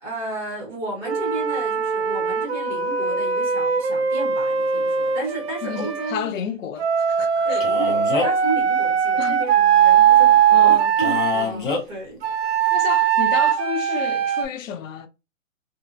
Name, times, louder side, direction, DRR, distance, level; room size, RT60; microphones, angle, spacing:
voice 1, 0.0-6.3 7.4-12.2, right 2 dB, 5° right, 0.6 m, -33 dB
Wind instrument woodwind instrument, 1.0-6.1 6.8-11.4 12.2-14.4, right 8 dB, 50° right, 0.6 m, -20 dB
voice 2, 5.6-7.7 9.2-9.4 10.5-10.9 12.7-15.1, left 8 dB, 70° left, 0.5 m, -31 dB
Male speech man speaking, 7.6-8.5 11.0-11.8, left 4 dB, 40° left, 0.7 m, -26 dB
2.6 x 2.3 x 2.5 m
hypercardioid pair, 150°, 41 cm